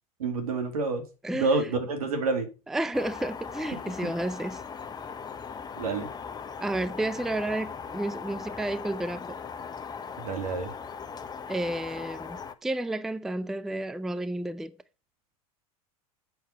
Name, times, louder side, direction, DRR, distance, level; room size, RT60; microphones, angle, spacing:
voice 1, 0.2-1.0 1.3-2.5 5.8-6.1 10.2-10.7, right 3 dB, 75° right, 2.2 m, -28 dB
voice 2, 1.2-1.7 2.7-4.6 6.6-9.4 11.5-14.8, right 1 dB, ahead, 0.4 m, -31 dB
sound 1, 2.9-12.5, left 6 dB, 20° left, 0.8 m, -39 dB
8.1 x 6.1 x 5.5 m
hypercardioid pair, 85°, 19 cm